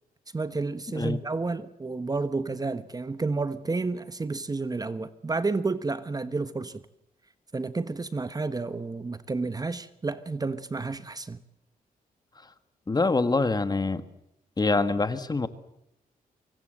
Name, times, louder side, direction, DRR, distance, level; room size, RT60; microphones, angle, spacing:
voice 1, 0.3-6.8 7.5-11.4, right 3 dB, 25° right, 1.2 m, -31 dB
voice 2, 12.9-14.0 14.6-15.5, left 3 dB, 25° left, 1.7 m, -25 dB
24.5 x 24.0 x 7.9 m
cardioid pair, 100°, 15 cm